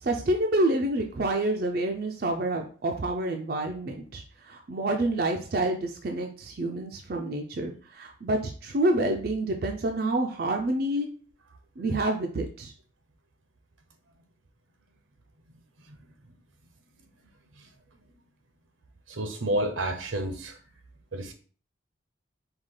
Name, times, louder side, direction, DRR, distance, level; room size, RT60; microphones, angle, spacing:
voice 1, 0.0-11.1 11.8-12.7, right 1 dB, 50° right, 0.4 m, -28 dB
voice 2, 19.1-20.6 21.1-21.3, right 1 dB, 85° right, 0.8 m, -30 dB
4.9 x 2.3 x 3.7 m
head